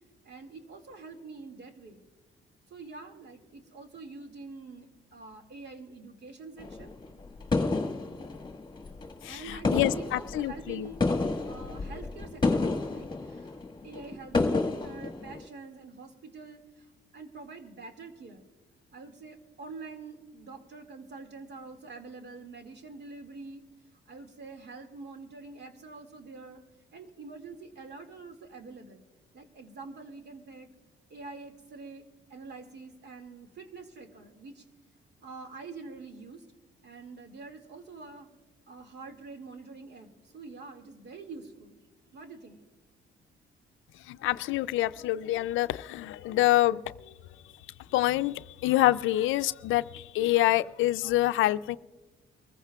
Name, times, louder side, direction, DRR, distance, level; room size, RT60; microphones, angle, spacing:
voice 1, 0.2-2.0 2.7-7.0 9.2-11.0 11.5-13.6 13.8-16.9 17.1-18.4 18.9-23.6 24.1-26.6 26.9-29.0 29.3-30.7 31.1-34.6 35.2-36.4 36.8-38.3 38.7-41.8 42.1-42.6, right 4 dB, 60° right, 2.2 m, -46 dB
sound 1, 6.6-9.3 9.5-15.4, left 3 dB, 20° left, 1.4 m, -30 dB
voice 2, 9.2-10.9 44.1-46.8 47.9-51.8, left 15 dB, 85° left, 0.4 m, -26 dB
24.0 x 15.0 x 2.3 m
cardioid pair, 90°, 20 cm